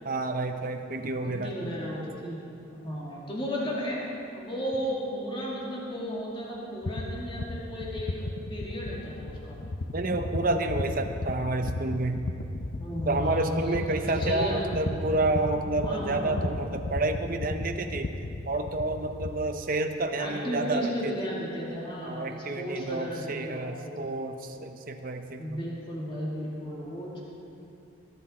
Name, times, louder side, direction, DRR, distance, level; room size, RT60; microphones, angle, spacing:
voice 1, 0.0-1.6 9.9-12.2 13.1-18.1 18.5-21.1 22.0-25.6, right 2 dB, 45° right, 5 dB, 0.8 m, -29 dB
voice 2, 1.2-4.0 4.3-9.6 12.8-13.8 14.1-14.8 15.8-16.4 20.2-24.1 25.4-27.2, equal, 25° left, -5 dB, 2.5 m, -34 dB
sound 1, 6.8-19.5, left 2 dB, 55° left, 0.7 m, -35 dB
22.0 x 9.9 x 4.5 m, 2.6 s
head